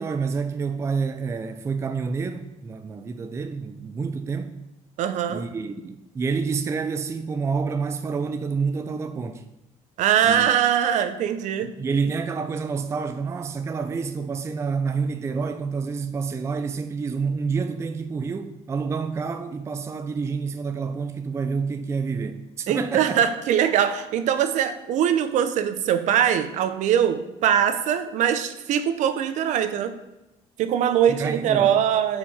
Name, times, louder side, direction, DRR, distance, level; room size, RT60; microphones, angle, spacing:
voice 1, 0.0-4.6 5.3-9.4 10.2-10.5 11.6-23.2 31.1-31.7, right 5 dB, 20° right, 0.4 m, -28 dB
voice 2, 5.0-5.4 10.0-11.7 22.7-30.0 30.6-32.2, right 9 dB, 65° right, 0.8 m, -22 dB
8.3 x 5.0 x 5.6 m
cardioid pair, 165°, 13 cm